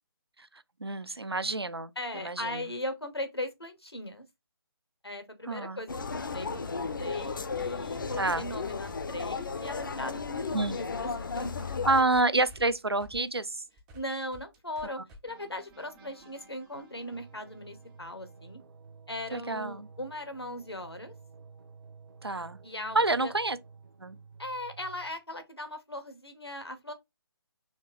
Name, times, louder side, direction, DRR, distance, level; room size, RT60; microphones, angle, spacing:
voice 1, 0.8-2.6 5.5-5.8 8.2-8.4 10.5-10.8 11.9-13.6 14.8-14.9 19.3-19.9 22.2-22.6 22.9-23.6 24.0-24.2, right 2 dB, 90° right, 0.5 m, -28 dB
voice 2, 2.0-4.2 5.0-11.7 13.9-18.6 19.1-21.1 22.6-23.3 24.4-26.9, left 1 dB, 90° left, 1.2 m, -39 dB
sound 1, 5.9-12.0, left 5 dB, 55° left, 0.5 m, -34 dB
sound 2, 7.2-11.1 11.3-18.6, equal, 5° right, 0.3 m, -54 dB
sound 3, 17.1-25.1, right 5 dB, 60° right, 0.8 m, -52 dB
4.3 x 2.8 x 3.0 m
figure-of-eight pair, 145°, 13 cm